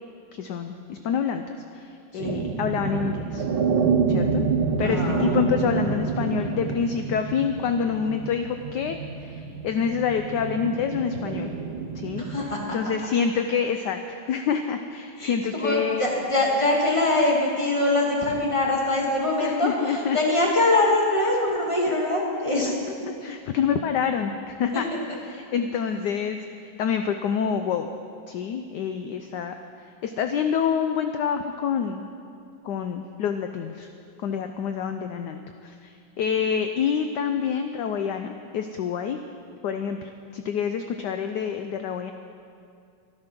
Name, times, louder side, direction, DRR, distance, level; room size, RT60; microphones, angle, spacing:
voice 1, 0.3-3.4 4.1-4.4 4.8-11.5 11.9-12.2 12.7-16.1 19.4-20.2 21.9-22.0 22.7-22.8 23.2-24.9 25.3-26.5 26.8-27.9 28.3-29.5 30.0-32.0 32.6-33.9 34.2-35.9 36.2-39.2 39.6-42.1, left 7 dB, 70° left, 7 dB, 1.0 m, -27 dB
sound 1, 2.2-12.4, right 5 dB, 80° right, 1.8 m, -27 dB
voice 2, 4.8-5.3 12.2-12.8 15.2-19.7 20.1-22.7, left 2 dB, 15° left, -3 dB, 2.1 m, -23 dB
13.0 x 12.0 x 6.0 m, 2.4 s
omnidirectional pair, 2.2 m